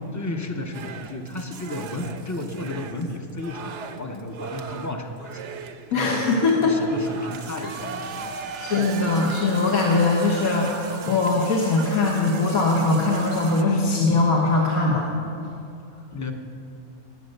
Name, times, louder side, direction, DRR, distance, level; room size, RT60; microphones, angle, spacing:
voice 1, 0.1-5.4 5.9-8.5 16.1-16.3, left 1 dB, 15° left, 4 dB, 0.6 m, -33 dB
sound 1, 0.7-13.6, right 6 dB, 60° right, 0.9 m, -38 dB
voice 2, 5.9-6.7 8.5-15.1, left 3 dB, 70° left, -2 dB, 1.6 m, -21 dB
20.0 x 7.9 x 6.6 m, 2.6 s
omnidirectional pair, 1.6 m